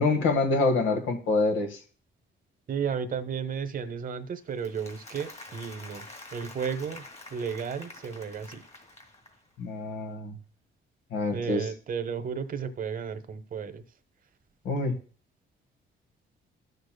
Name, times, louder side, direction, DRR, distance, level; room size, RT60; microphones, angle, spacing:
voice 1, 0.0-1.8 9.6-10.4 11.1-11.6 14.6-15.0, left 3 dB, 85° left, 3 dB, 1.5 m, -26 dB
voice 2, 2.7-6.1 6.3-7.0 7.3-8.6 11.3-13.8, right 6 dB, 45° right, 9 dB, 0.9 m, -33 dB
Applause, 4.5-9.5, left 2 dB, 35° left, 2.1 m, -47 dB
12.5 x 6.7 x 2.2 m, 0.39 s
cardioid pair, 90°, 20 cm